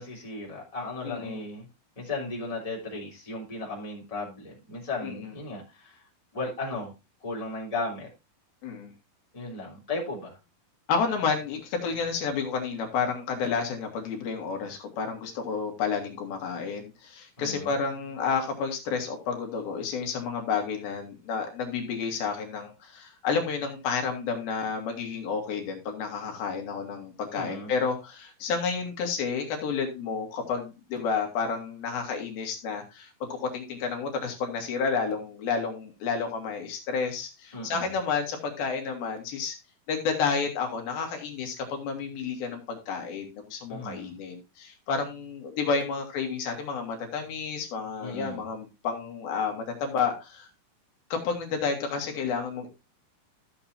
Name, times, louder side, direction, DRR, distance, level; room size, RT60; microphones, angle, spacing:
voice 1, 0.0-1.7 2.0-6.0 6.3-6.9 7.2-8.1 9.3-10.4 17.4-17.7 27.3-27.7 37.5-37.9 43.7-44.2 48.0-48.5, left 2 dB, 10° left, 2.9 m, -35 dB
voice 2, 1.0-1.4 5.0-5.3 8.6-8.9 10.9-39.5 39.9-50.5 51.1-52.7, left 5 dB, 75° left, 3.4 m, -30 dB
13.5 x 7.2 x 2.7 m
omnidirectional pair, 4.4 m